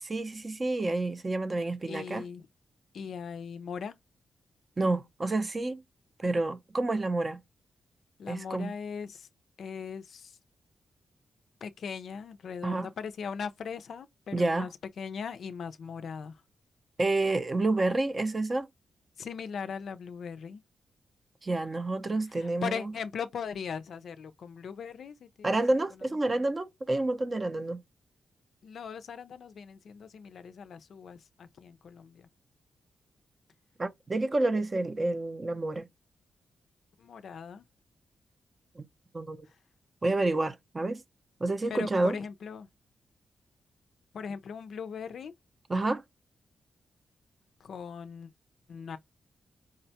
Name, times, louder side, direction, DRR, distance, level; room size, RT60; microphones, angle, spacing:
voice 1, 0.0-2.2 4.8-5.8 6.2-7.4 8.3-8.7 12.6-12.9 14.3-14.7 17.0-18.7 21.4-22.8 25.4-27.8 33.8-35.9 38.8-38.9 39.1-39.5 40.0-41.0 41.4-42.2 45.7-46.0, right 2 dB, 25° right, 0.5 m, -29 dB
voice 2, 1.9-2.5 2.9-3.9 8.2-9.3 9.6-10.4 11.6-14.7 15.0-16.4 19.2-20.6 22.4-25.6 26.3-26.4 28.6-32.3 37.0-37.6 41.7-42.7 44.1-45.3 47.6-48.3 48.7-49.0, left 6 dB, 70° left, 0.4 m, -39 dB
4.8 x 2.1 x 2.7 m
wide cardioid pair, 120°, 0 cm